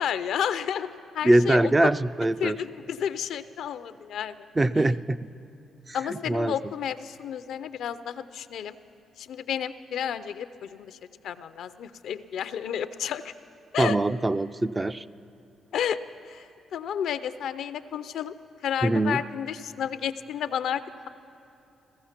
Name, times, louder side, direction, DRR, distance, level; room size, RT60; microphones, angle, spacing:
voice 1, 0.0-1.9 2.4-4.5 4.7-4.8 5.9-8.8 9.2-11.0 11.2-13.3 13.7-14.0 15.7-16.0 16.3-18.3 18.6-21.1, left 9 dB, 75° left, 13 dB, 0.5 m, -31 dB
voice 2, 1.2-2.6 4.6-5.2 5.9-6.5 13.8-15.0 18.8-19.2, right 2 dB, 25° right, 12 dB, 0.4 m, -23 dB
16.0 x 15.0 x 5.8 m, 2.9 s
supercardioid pair, 65°, 0 cm